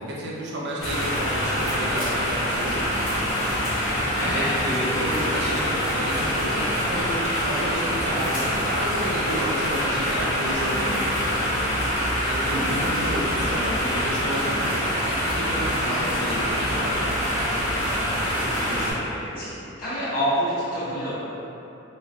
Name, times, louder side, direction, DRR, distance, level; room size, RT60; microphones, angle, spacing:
voice 1, 0.0-3.4 4.2-7.1 7.4-11.3 12.1-17.1, equal, 55° right, -5 dB, 0.4 m, -31 dB
sound 1, 0.8-18.9, equal, 75° left, 0.8 m, -25 dB
voice 2, 4.2-4.7 12.5-12.8 18.5-19.5 19.8-21.1, equal, 45° left, -13 dB, 1.0 m, -28 dB
3.0 x 2.2 x 2.5 m, 2.9 s
head